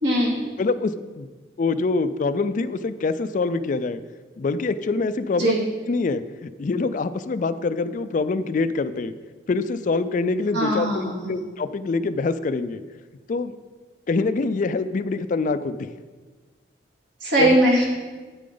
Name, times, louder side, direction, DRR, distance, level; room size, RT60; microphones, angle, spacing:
voice 1, 0.0-0.4 5.4-5.6 10.5-11.3 17.2-17.9, right 1 dB, 70° right, -3 dB, 2.2 m, -20 dB
voice 2, 0.6-1.3 1.6-4.0 4.4-5.6 5.9-9.1 9.5-12.8 13.3-13.6 14.1-15.9 17.4-17.6, left 3 dB, 40° left, 12 dB, 0.3 m, -25 dB
9.3 x 8.5 x 3.9 m, 1.4 s
head